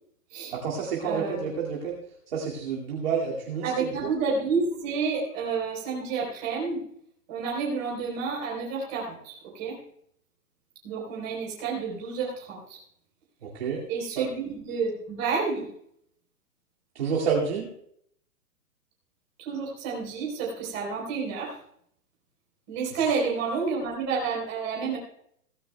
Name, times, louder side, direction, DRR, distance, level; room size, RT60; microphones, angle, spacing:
voice 1, 0.5-2.0 2.3-4.1 13.4-13.8 14.2-14.3 16.9-17.7, right 6 dB, 40° right, -5 dB, 2.4 m, -29 dB
voice 2, 1.0-1.4 3.6-6.8 7.3-9.8 10.8-12.8 13.9-15.7 19.4-21.6 22.7-25.0, right 5 dB, 15° right, -4 dB, 3.9 m, -30 dB
17.5 x 15.0 x 2.3 m, 0.69 s
hypercardioid pair, 180°, 46 cm